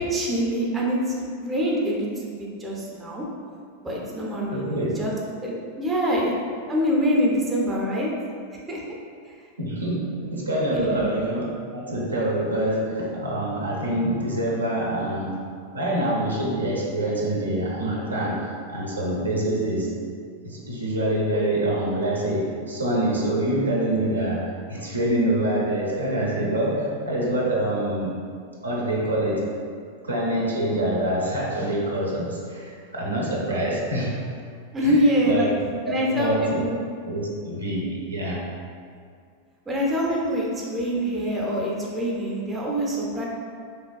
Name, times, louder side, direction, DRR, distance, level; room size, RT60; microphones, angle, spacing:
voice 1, 0.0-3.2 3.8-5.1 5.4-6.3 6.7-8.1 8.7-8.8 10.7-11.1 34.7-35.5 35.9-36.8 39.7-43.2, equal, 15° right, -3 dB, 0.4 m, -25 dB
voice 2, 4.5-4.9 9.6-11.5 11.7-15.5 15.7-20.0 20.4-28.2 28.6-29.5 30.0-34.2 34.8-35.0 35.2-35.5 35.8-36.6 37.1-38.5, right 1 dB, 75° right, -4 dB, 0.4 m, -25 dB
2.9 x 2.2 x 2.3 m, 2.2 s
figure-of-eight pair, 90°, 0 cm